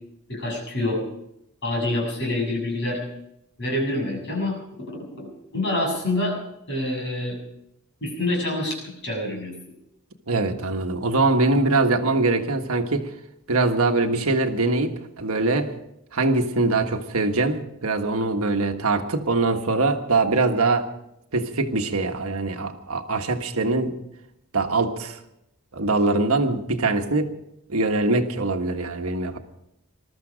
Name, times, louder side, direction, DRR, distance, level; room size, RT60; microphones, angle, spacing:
voice 1, 0.3-1.0 1.6-3.0 3.6-5.3 5.5-6.4 6.7-7.4 8.0-9.5, left 1 dB, 55° left, -1 dB, 7.3 m, -26 dB
voice 2, 10.3-13.1 13.5-15.7 16.1-20.9 21.3-23.9 24.5-25.2 25.7-27.3 27.7-29.4, right 3 dB, 70° right, 5 dB, 1.5 m, -23 dB
21.0 x 13.5 x 5.1 m, 0.82 s
head